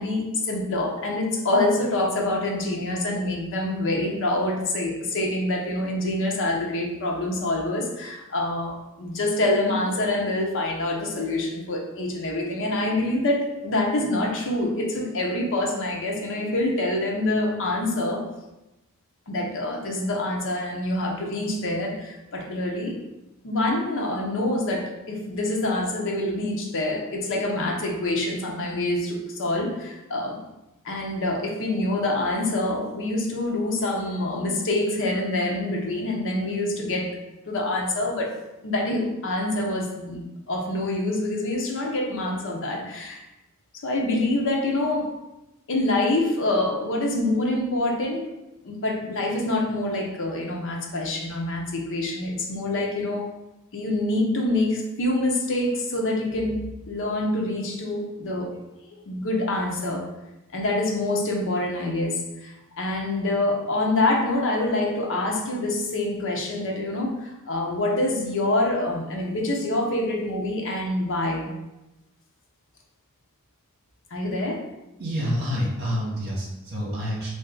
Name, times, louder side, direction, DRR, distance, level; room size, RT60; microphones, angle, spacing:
voice 1, 0.0-18.2 19.3-22.9 23.4-30.4 30.8-37.2 37.5-38.3 38.6-43.2 43.8-45.1 45.7-48.2 48.6-53.3 53.7-56.6 56.9-58.5 59.1-60.1 60.5-71.5 74.1-74.6, left 2 dB, 60° left, 0 dB, 0.7 m, -26 dB
voice 2, 75.0-77.3, equal, 50° right, -4 dB, 1.3 m, -28 dB
3.3 x 2.6 x 3.7 m, 0.97 s
head